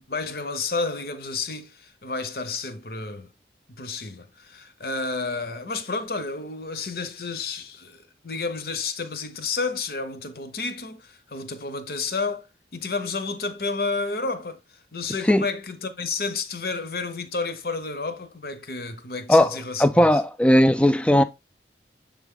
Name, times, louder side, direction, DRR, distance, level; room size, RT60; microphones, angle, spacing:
voice 1, 0.0-3.3 3.7-12.5 12.7-14.6 14.9-20.2, left 4 dB, 55° left, 0.8 m, -31 dB
voice 2, 19.8-21.2, left 1 dB, 5° left, 0.3 m, -17 dB
7.2 x 3.6 x 3.7 m
head